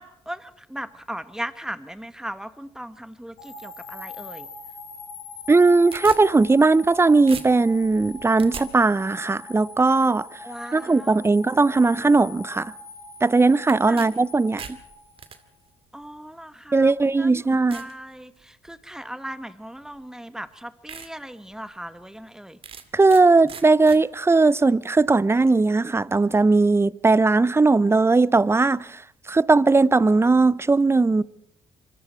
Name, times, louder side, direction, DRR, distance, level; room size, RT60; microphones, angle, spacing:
voice 1, 0.0-4.5 10.4-11.4 13.8-14.0 15.9-22.6, right 1 dB, 5° right, 1.7 m, -38 dB
sound 1, 3.4-15.6, left 4 dB, 90° left, 5.5 m, -42 dB
sound 2, 5.4-7.0 7.3-8.7 13.7-14.1 14.4-15.4 16.3-16.4 17.0-17.1 17.7-17.9 18.4-18.8 19.9-20.0 20.5-20.6 20.9-21.1 21.5-21.6 22.6-23.2 23.5-24.0, right 6 dB, 50° right, 2.2 m, -39 dB
voice 2, 5.5-10.3 10.7-12.7 13.2-14.6 16.7-17.8 22.9-29.0 29.3-31.2, right 3 dB, 20° right, 0.8 m, -18 dB
25.5 x 25.0 x 4.6 m
hypercardioid pair, 55°, 13 cm